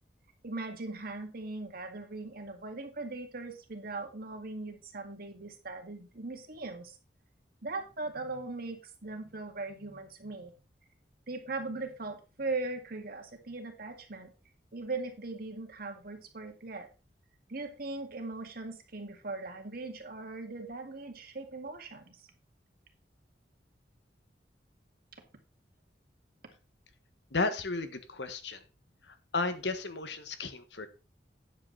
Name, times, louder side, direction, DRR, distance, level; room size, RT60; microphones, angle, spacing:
voice 1, 0.4-7.0 7.6-10.5 11.3-14.3 14.7-16.9 17.5-22.3, right 3 dB, 55° right, 5 dB, 2.1 m, -39 dB
voice 2, 27.3-28.6 29.1-30.9, left 3 dB, 80° left, 10 dB, 1.4 m, -34 dB
9.7 x 7.9 x 4.1 m, 0.31 s
head